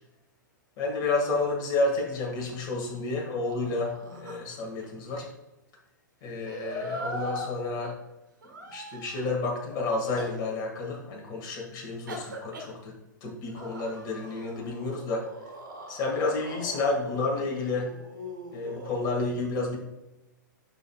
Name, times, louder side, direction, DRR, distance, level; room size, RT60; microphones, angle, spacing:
voice 1, 0.8-5.3 6.2-7.9 8.7-12.9 13.2-15.3 15.9-17.9 18.5-19.8, left 3 dB, 35° left, -1 dB, 1.9 m, -30 dB
sound 1, 1.5-2.8 3.2-4.9 6.2-7.5 8.4-9.5 10.2-10.3 12.1-12.7 13.4-19.1, equal, 80° right, 1.6 m, -41 dB
9.9 x 4.9 x 2.4 m, 1.0 s
figure-of-eight pair, 110°, 11 cm